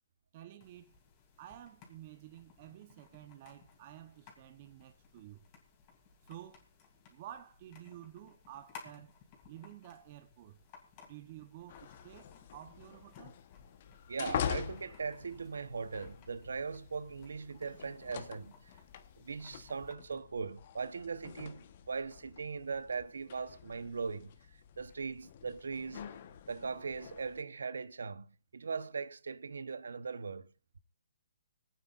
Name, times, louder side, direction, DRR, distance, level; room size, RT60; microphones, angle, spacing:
voice 1, 0.3-0.9 1.4-5.4 6.3-6.6 7.1-9.1 9.5-10.6 11.1-13.4, right 12 dB, 35° right, 0.9 m, -51 dB
sound 1, 0.6-20.0, left 6 dB, 25° left, 2.8 m, -60 dB
sound 2, 11.7-27.4, left 9 dB, 45° left, 1.1 m, -45 dB
voice 2, 14.1-18.7 19.2-24.3 24.8-26.1 26.5-28.3 28.5-30.5, right 5 dB, 75° right, 1.0 m, -39 dB
26.0 x 9.1 x 2.5 m
hypercardioid pair, 150°, 0 cm